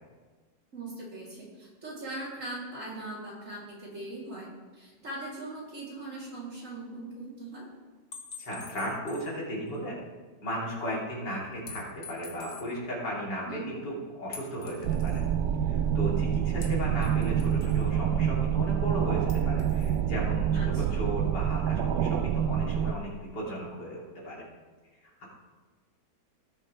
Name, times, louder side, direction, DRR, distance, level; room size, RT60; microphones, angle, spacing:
voice 1, 0.7-7.7 13.5-13.7 20.5-21.0, right 2 dB, 45° right, -6 dB, 3.5 m, -40 dB
sound 1, 8.1-9.4 9.7-9.8 11.7-12.7 14.3-15.3 16.6-17.9 19.3-20.0, left 4 dB, 35° left, 1.4 m, -46 dB
voice 2, 8.4-9.9 10.4-15.2 15.6-24.4 25.2-25.3, equal, 75° left, -5 dB, 3.6 m, -35 dB
sound 2, 14.8-22.9, right 9 dB, 75° right, 1.1 m, -27 dB
18.0 x 7.4 x 3.3 m, 1.4 s
omnidirectional pair, 1.8 m